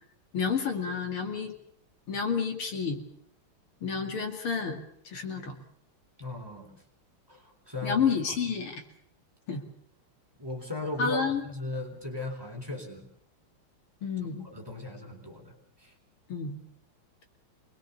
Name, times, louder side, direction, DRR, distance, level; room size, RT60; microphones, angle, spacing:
voice 1, 0.3-1.5 2.1-3.0 3.8-5.6 7.8-8.8 9.5-9.6 11.0-11.5 14.0-14.5 16.3-16.6, left 6 dB, 75° left, 5 dB, 3.3 m, -30 dB
voice 2, 6.2-6.7 7.3-8.0 10.4-13.1 14.4-15.5 15.8-15.9, left 2 dB, 10° right, 3 dB, 3.9 m, -37 dB
25.0 x 21.5 x 7.0 m, 0.69 s
omnidirectional pair, 2.4 m